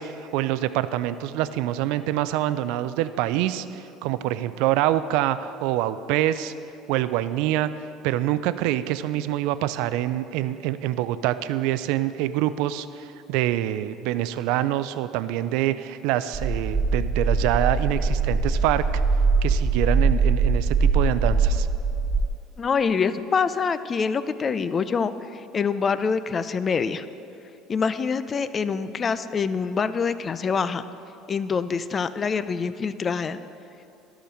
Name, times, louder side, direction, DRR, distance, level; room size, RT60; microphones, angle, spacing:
voice 1, 0.0-6.5 6.9-7.7 8.0-18.8 19.4-21.7, right 13 dB, 75° right, 13 dB, 0.3 m, -25 dB
sound 1, 16.3-22.3, right 4 dB, 15° right, 2.7 m, -22 dB
voice 2, 22.6-27.1 27.7-30.8 31.3-33.4, left 5 dB, 35° left, 14 dB, 0.4 m, -25 dB
12.5 x 5.0 x 6.4 m, 2.7 s
hypercardioid pair, 80°, 0 cm